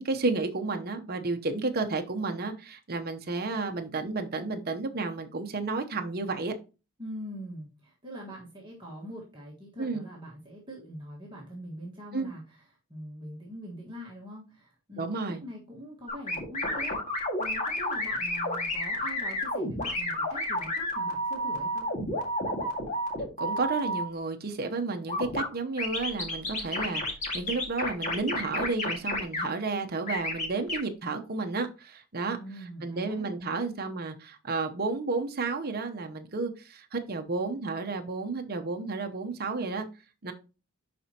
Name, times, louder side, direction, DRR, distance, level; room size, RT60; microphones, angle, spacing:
voice 1, 0.0-6.5 9.8-10.0 12.1-12.3 15.0-15.4 23.4-27.0 27.3-32.4 32.8-39.9 40.2-40.3, right 3 dB, 45° right, 0.9 m, -32 dB
voice 2, 7.0-12.6 12.9-17.0 17.4-21.9 32.3-33.3, right 1 dB, 20° right, 1.6 m, -43 dB
sound 1, 16.1-24.0 25.1-25.5 25.8-29.5 30.1-30.8, left 1 dB, 35° left, 1.9 m, -30 dB
11.0 x 4.3 x 2.9 m
head